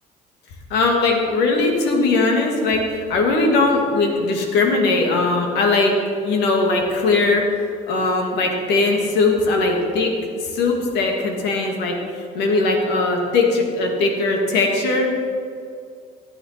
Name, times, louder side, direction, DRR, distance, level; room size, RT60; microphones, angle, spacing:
voice 1, 0.7-10.1 10.4-15.2, left 3 dB, 85° left, 1 dB, 2.5 m, -20 dB
14.5 x 9.1 x 5.9 m, 2.3 s
cardioid pair, 110°, 17 cm